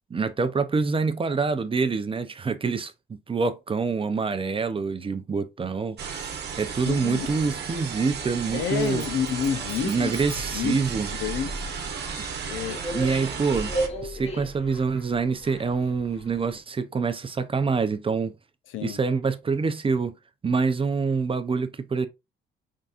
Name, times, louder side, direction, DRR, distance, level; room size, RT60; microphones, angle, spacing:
voice 1, 0.1-9.0 9.8-11.1 12.2-12.3 12.9-13.7 14.0-18.3 18.8-20.1 20.4-22.1, right 4 dB, 25° right, 0.5 m, -26 dB
sound 1, 6.0-13.9, right 6 dB, 55° right, 1.0 m, -34 dB
voice 2, 6.9-7.4 8.5-10.1 10.5-10.8 11.2-11.6 12.5-12.8 18.7-19.0, left 8 dB, 75° left, 0.6 m, -29 dB
sound 2, 8.8-10.6, left 3 dB, 5° left, 0.9 m, -46 dB
sound 3, 10.1-16.6, right 1 dB, 30° left, 1.2 m, -36 dB
4.0 x 3.6 x 2.4 m
cardioid pair, 90°, 20 cm